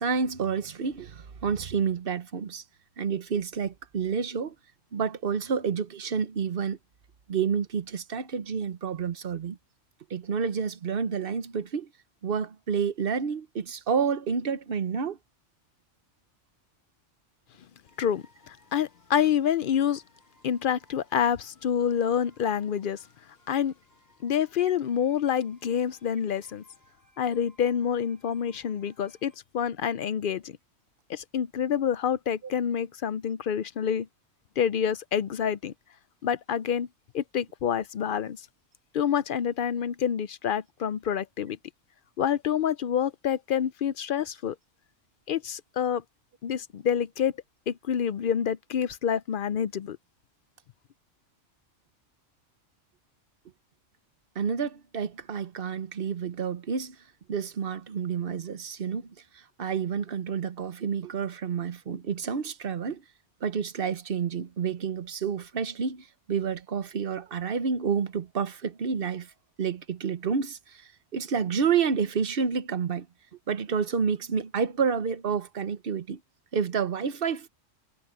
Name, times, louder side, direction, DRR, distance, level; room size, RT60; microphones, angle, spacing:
voice 1, 0.0-2.6 3.0-4.5 4.9-6.8 7.3-9.6 10.1-11.9 12.2-15.2 54.3-57.0 57.3-63.0 63.4-69.3 69.6-73.1 73.5-76.2 76.5-77.5, right 6 dB, 50° right, 1.1 m, -29 dB
sound 1, 17.8-29.4, equal, 15° left, 8.2 m, -64 dB
voice 2, 18.0-20.0 20.4-23.0 23.5-23.7 24.2-26.6 27.2-30.5 31.1-34.1 34.6-35.7 36.2-36.9 37.1-38.4 38.9-41.6 42.2-44.6 45.3-46.0 46.4-47.3 47.7-50.0, left 8 dB, 60° left, 0.6 m, -27 dB
omnidirectional pair, 1.3 m